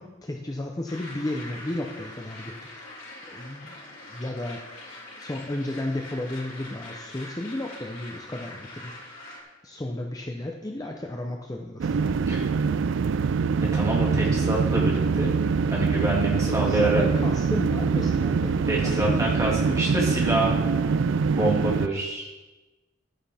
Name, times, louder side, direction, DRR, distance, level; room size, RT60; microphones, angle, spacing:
voice 1, 0.0-2.8 3.3-3.7 4.1-4.6 5.2-9.1 9.6-12.1 16.5-19.4, left 1 dB, 20° left, 1 dB, 0.7 m, -33 dB
sound 1, 0.9-9.4, left 1 dB, 80° left, 3.8 m, -43 dB
sound 2, 11.8-21.9, right 5 dB, 65° right, 0.4 m, -24 dB
voice 2, 13.7-15.3 15.7-17.1 18.7-20.6 21.3-22.3, right 1 dB, 15° right, -3 dB, 2.1 m, -26 dB
12.5 x 9.9 x 3.5 m, 1.1 s
head